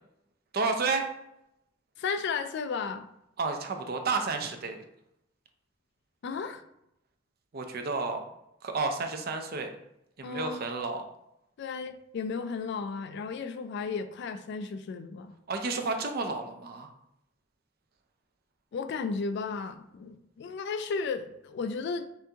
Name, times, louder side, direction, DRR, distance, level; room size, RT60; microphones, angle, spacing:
voice 1, 0.5-1.1 3.4-4.8 7.5-8.2 8.6-9.7 10.2-11.0 15.5-16.9, right 4 dB, 50° right, 5 dB, 0.5 m, -31 dB
voice 2, 2.0-3.1 6.2-6.6 10.2-10.6 11.6-15.3 18.7-22.1, left 5 dB, 60° left, 10 dB, 0.3 m, -34 dB
5.7 x 2.6 x 2.8 m, 0.82 s
head